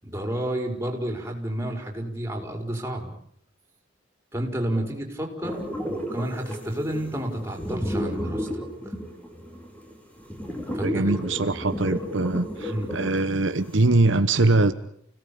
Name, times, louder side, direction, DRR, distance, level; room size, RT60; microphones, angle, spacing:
voice 1, 0.0-3.1 4.3-5.6 5.8-8.9 10.7-11.1 12.7-13.0, right 1 dB, 15° right, 2 dB, 5.3 m, -30 dB
sound 1, 5.4-13.9, equal, 10° left, 4.5 m, -33 dB
voice 2, 10.8-14.7, right 2 dB, 70° right, 10 dB, 1.1 m, -22 dB
29.5 x 18.0 x 8.7 m, 0.70 s
head